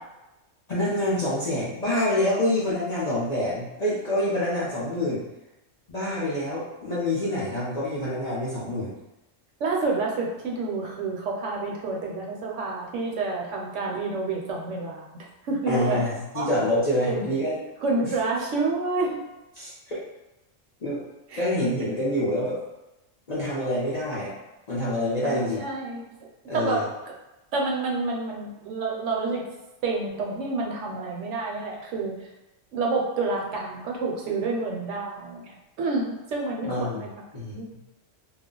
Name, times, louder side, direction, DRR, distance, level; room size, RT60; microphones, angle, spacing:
voice 1, 0.7-5.2 5.9-8.9 15.7-17.6 18.0-18.1 19.5-20.0 20.8-21.0 21.4-22.6 23.3-24.3 24.7-25.6 26.5-26.9 36.6-37.1 37.3-37.5, left 1 dB, 45° left, -8 dB, 0.6 m, -26 dB
voice 2, 9.6-15.1 15.5-16.0 16.3-16.5 17.1-17.2 17.8-19.2 21.3-21.4 25.2-26.0 26.5-27.1 27.5-29.4 29.8-32.1 32.7-37.2 37.5-37.7, right 3 dB, 75° right, -1 dB, 0.9 m, -28 dB
2.3 x 2.1 x 3.7 m, 0.99 s
omnidirectional pair, 1.3 m